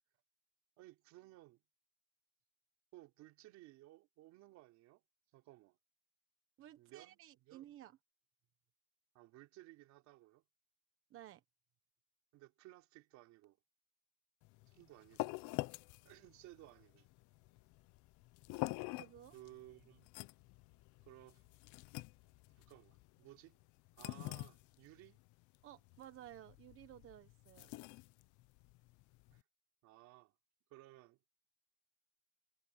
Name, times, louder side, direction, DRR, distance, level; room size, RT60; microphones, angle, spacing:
voice 1, 0.8-1.6 2.9-5.0 5.3-5.8 6.8-7.2 7.5-7.6 9.1-10.4 12.3-13.6 14.7-15.4 16.0-17.1 19.3-20.1 21.0-21.4 22.5-23.6 23.9-25.2 29.3-29.4 29.8-30.3 30.7-31.2, right 17 dB, 70° right, 3.8 m, -59 dB
voice 2, 6.6-8.0 11.1-11.4 19.0-19.3 25.6-27.7, right 13 dB, 45° right, 1.1 m, -55 dB
sound 1, 14.4-29.4, left 21 dB, 80° left, 0.7 m, -47 dB
sound 2, 17.7-23.1, left 14 dB, 55° left, 5.8 m, -76 dB
cardioid pair, 165°, 30 cm